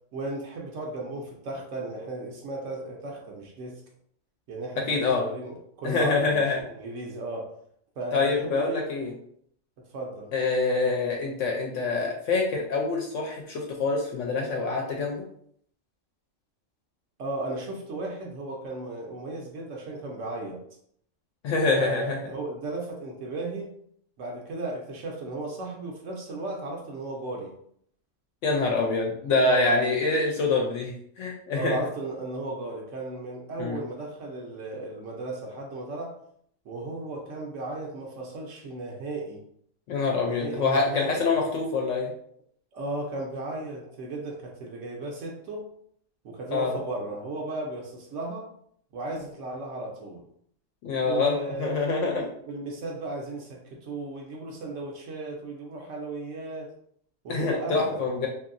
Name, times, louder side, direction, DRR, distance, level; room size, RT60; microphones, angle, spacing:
voice 1, 0.1-3.8 4.5-7.5 8.0-8.9 9.9-10.3 17.2-20.6 21.7-23.7 24.2-27.5 28.7-29.0 29.4-30.0 31.5-36.1 36.6-39.4 40.2-41.5 42.7-45.7 46.2-48.5 48.9-50.2 51.0-56.7 57.2-58.1, right 2 dB, 75° right, -1 dB, 0.9 m, -35 dB
voice 2, 4.9-5.2 5.8-6.6 8.1-9.1 10.3-15.2 21.4-22.2 28.4-31.8 33.6-33.8 39.9-42.1 46.5-46.8 50.8-52.2 57.3-58.3, left 3 dB, 70° left, 0 dB, 0.9 m, -25 dB
2.9 x 2.7 x 2.5 m, 0.66 s
omnidirectional pair, 1.4 m